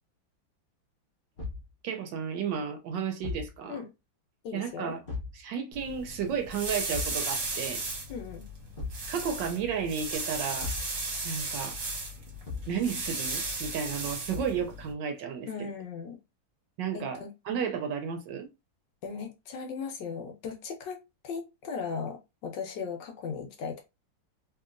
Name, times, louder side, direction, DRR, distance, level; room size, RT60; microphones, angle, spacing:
Thump thud, 1.4-1.7 3.2-3.6 5.0-5.4 6.9-7.2 8.7-9.1 10.6-10.9 12.4-12.8 14.3-14.6, left 4 dB, 55° left, 0.5 m, -37 dB
voice 1, 1.8-3.8 4.5-5.0 5.3-7.8 9.1-10.7 11.2-11.8 12.7-15.5 16.8-17.2 17.5-18.5, right 7 dB, 75° right, 1.2 m, -33 dB
voice 2, 4.4-4.9 8.1-8.4 15.5-16.2 16.9-17.3 19.0-23.8, left 5 dB, 75° left, 1.2 m, -37 dB
sound 1, 5.7-14.9, right 3 dB, 50° right, 1.2 m, -36 dB
2.9 x 2.8 x 2.4 m
omnidirectional pair, 2.0 m